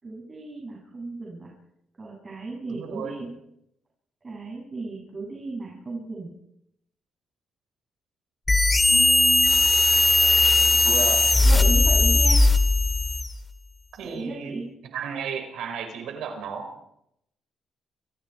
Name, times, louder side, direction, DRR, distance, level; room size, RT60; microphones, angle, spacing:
voice 1, 0.0-1.5 2.0-3.3 4.2-6.3 8.9-9.6 10.8-11.0 11.4-12.4 14.0-14.7, right 3 dB, 30° right, -2 dB, 7.6 m, -35 dB
voice 2, 2.7-3.3 9.9-11.2 13.9-14.6 14.9-16.7, right 7 dB, 80° right, 5 dB, 5.3 m, -34 dB
sound 1, 8.5-13.4, left 2 dB, 20° left, 2.3 m, -18 dB
29.5 x 24.5 x 4.7 m, 0.79 s
cardioid pair, 90°, 0 cm